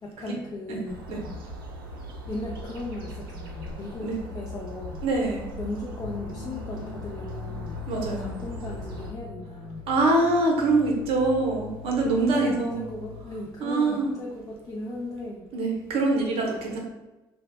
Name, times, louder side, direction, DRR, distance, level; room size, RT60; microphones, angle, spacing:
voice 1, 0.0-1.1 2.3-5.0 5.6-9.9 12.0-15.5, left 2 dB, 35° left, -1 dB, 0.5 m, -37 dB
sound 1, 0.9-9.1, equal, 85° right, 0.4 m, -39 dB
voice 2, 5.0-5.4 7.9-8.4 9.9-12.8 13.6-14.1 15.5-16.8, right 2 dB, 55° right, 0 dB, 0.7 m, -24 dB
sound 2, 6.0-13.2, left 5 dB, 65° left, 0.7 m, -41 dB
2.7 x 2.1 x 3.2 m, 1.1 s
hypercardioid pair, 55°, 11 cm